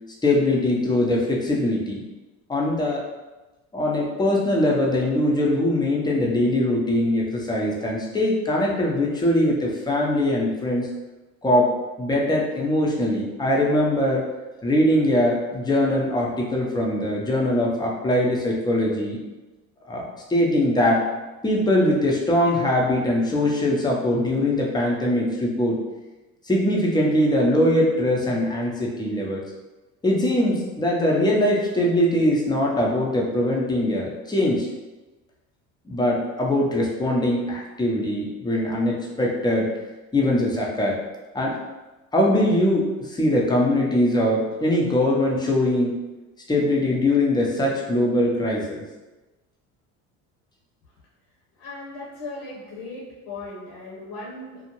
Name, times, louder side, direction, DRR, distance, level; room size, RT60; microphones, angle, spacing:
voice 1, 0.2-2.0 2.5-3.0 3.7-10.9 11.4-11.7 12.0-14.3 14.6-19.2 19.9-21.0 21.4-25.8 26.5-29.4 30.0-34.7 35.9-39.7 40.1-41.0 41.3-41.6 42.1-46.0 46.5-48.8, left 1 dB, 10° left, -3 dB, 0.6 m, -22 dB
voice 2, 51.6-54.6, left 2 dB, 75° left, -6 dB, 1.0 m, -37 dB
2.5 x 2.1 x 2.9 m, 1.1 s
hypercardioid pair, 70°, 42 cm